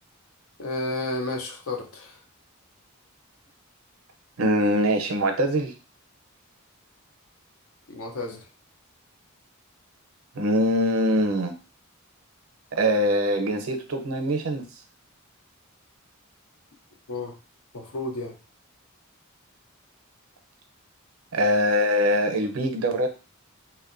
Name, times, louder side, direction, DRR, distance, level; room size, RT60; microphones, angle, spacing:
voice 1, 0.6-2.2 7.9-8.4 17.1-17.3 17.7-18.4, left 2 dB, 80° left, 3 dB, 0.6 m, -31 dB
voice 2, 4.4-5.7 10.3-11.5 12.7-14.6 21.3-23.1, equal, 75° right, 6 dB, 0.5 m, -23 dB
2.9 x 2.1 x 2.4 m, 0.33 s
head